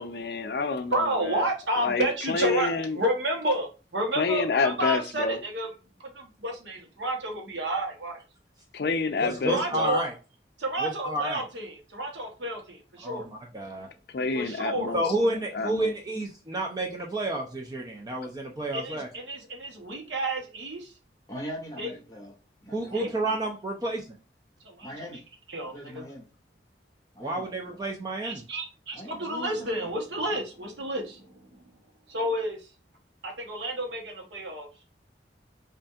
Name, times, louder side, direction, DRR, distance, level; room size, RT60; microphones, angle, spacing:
voice 1, 0.0-1.5 1.8-3.0 4.2-5.4 8.7-9.9 14.1-15.0 15.5-15.9, left 4 dB, 60° left, 0.4 m, -28 dB
voice 2, 0.9-5.7 6.1-8.2 9.4-10.0 10.6-13.2 14.3-14.9 18.7-20.9 21.8-21.9 22.9-23.1 24.6-24.9 25.5-26.0 28.2-31.3 32.1-32.6 33.2-34.7, right 1 dB, 85° right, 1.0 m, -30 dB
voice 3, 9.2-10.1 10.8-11.4 13.0-13.9 14.9-19.1 22.7-24.0 27.2-28.4, right 1 dB, 20° right, 0.4 m, -30 dB
voice 4, 21.3-22.3 22.6-23.4 24.8-25.2 25.6-26.3 27.1-27.8 28.9-30.0 30.2-30.3, equal, 20° left, 1.3 m, -41 dB
5.3 x 2.5 x 2.4 m
head